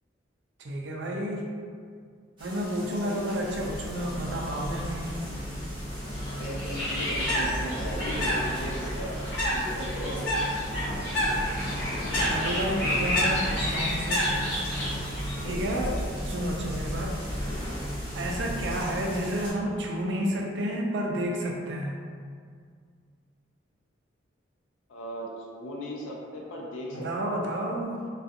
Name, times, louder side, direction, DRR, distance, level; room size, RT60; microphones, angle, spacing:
voice 1, 0.6-1.5 2.4-5.1 12.3-14.3 15.4-16.0 16.3-17.2 18.1-22.0 26.9-28.1, equal, 65° right, 0 dB, 0.4 m, -31 dB
sound 1, 2.4-19.5, equal, 25° right, 0.8 m, -44 dB
voice 2, 2.8-3.2 6.3-10.4 15.3-15.9 24.9-27.5, equal, 85° left, -2 dB, 0.5 m, -38 dB
sound 2, 3.5-19.3, equal, 20° left, 0.5 m, -35 dB
Bird, 6.6-15.4, equal, 65° left, 1.0 m, -29 dB
2.4 x 2.3 x 2.6 m, 2.1 s
head